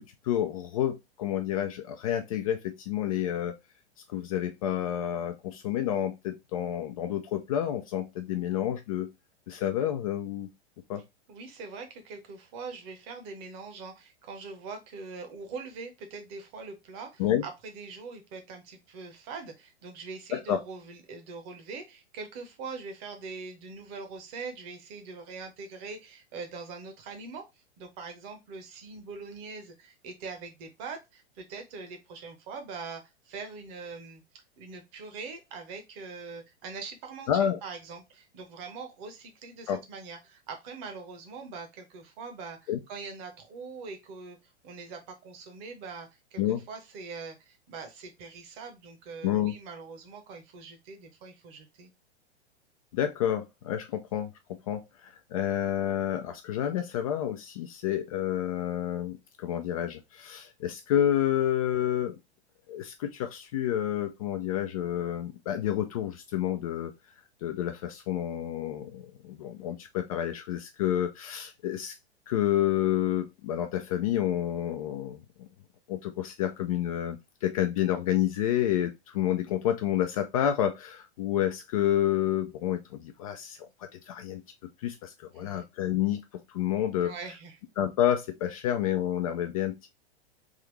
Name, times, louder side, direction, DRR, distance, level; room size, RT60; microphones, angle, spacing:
voice 1, 0.0-3.6 4.1-9.1 9.5-10.5 10.9-11.0 17.2-17.4 20.3-20.6 37.3-37.6 39.7-39.8 42.7-42.8 46.4-46.6 49.2-49.5 52.9-62.2 62.7-66.9 67.4-71.9 72.3-75.5 75.9-83.6 83.9-86.2 86.5-87.1 87.8-89.9, left 11 dB, 35° left, 0.4 m, -29 dB
voice 2, 11.3-27.5 27.8-44.4 44.6-46.4 46.7-51.9 85.4-85.6 87.0-87.6, right 4 dB, 35° right, 1.0 m, -42 dB
3.6 x 2.8 x 3.2 m
figure-of-eight pair, 100°, 33 cm